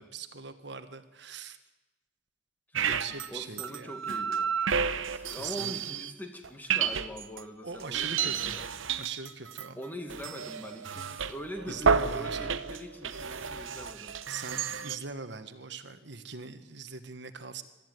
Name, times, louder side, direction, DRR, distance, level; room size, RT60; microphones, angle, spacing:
voice 1, 0.0-1.6 2.7-3.9 5.4-6.0 7.6-8.6 9.0-9.8 11.7-12.5 14.3-17.6, right 5 dB, 60° right, 9 dB, 1.4 m, -41 dB
sound 1, 2.7-3.3 3.6-6.1 6.4-7.4 7.8-15.0, right 6 dB, 80° right, 0.9 m, -31 dB
voice 2, 3.3-4.5 5.1-8.7 9.8-14.2, equal, 10° left, 5 dB, 2.0 m, -42 dB
23.0 x 13.5 x 9.3 m, 1.1 s
head